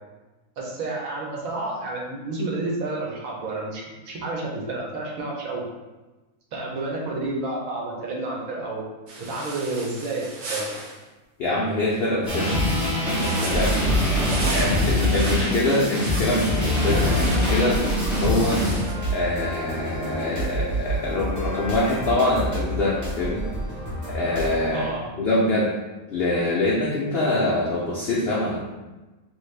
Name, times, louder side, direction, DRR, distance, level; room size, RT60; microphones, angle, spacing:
voice 1, 0.6-5.6 6.5-8.8 9.2-10.7 14.3-14.6 24.7-25.1, right 2 dB, 70° right, -3 dB, 1.1 m, -30 dB
sound 1, 9.1-11.0 13.1-18.9, right 2 dB, 85° right, 1.3 m, -36 dB
voice 2, 11.4-12.6 13.4-13.8 14.5-18.6 19.1-23.5 24.1-24.9 25.1-25.7 26.1-28.6, left 2 dB, 75° left, -4 dB, 0.5 m, -24 dB
sound 2, 12.3-18.8, left 1 dB, ahead, 0.5 m, -23 dB
sound 3, 16.7-24.7, right 1 dB, 35° right, 1.0 m, -30 dB
3.1 x 2.6 x 3.2 m, 1.1 s
omnidirectional pair, 1.6 m